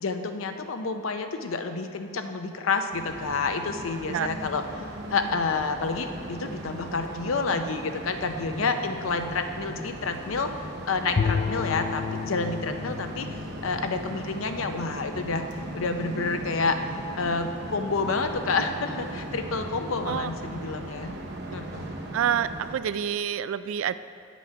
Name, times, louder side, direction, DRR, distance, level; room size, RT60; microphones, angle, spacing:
voice 1, 0.0-16.8 17.2-21.1 21.5-21.9, left 4 dB, 85° left, 7 dB, 0.6 m, -29 dB
sound 1, 2.9-22.8, right 1 dB, 60° right, 1.0 m, -38 dB
Bowed string instrument, 11.2-15.4, left 5 dB, 35° left, 0.4 m, -32 dB
voice 2, 22.1-23.9, right 8 dB, 80° right, 14 dB, 0.3 m, -27 dB
9.3 x 6.2 x 5.6 m, 2.3 s
head